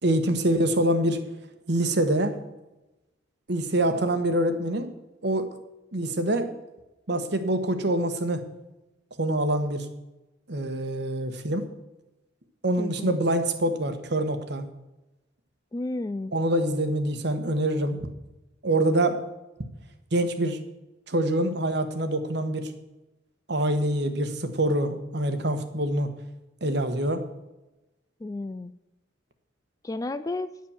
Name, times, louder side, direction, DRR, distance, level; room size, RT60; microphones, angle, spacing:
voice 1, 0.0-1.2 1.7-2.4 3.5-4.9 5.2-5.5 5.9-6.6 7.1-8.4 9.2-9.9 10.5-11.7 12.6-14.6 16.3-18.1 18.6-19.2 20.1-20.6 21.1-22.7 23.5-26.1 26.6-27.2, right 1 dB, 60° right, 8 dB, 1.3 m, -25 dB
voice 2, 12.8-13.2 15.7-16.3 28.2-28.7 29.8-30.5, left 2 dB, 20° left, 14 dB, 0.3 m, -32 dB
10.5 x 7.6 x 7.2 m, 1.0 s
head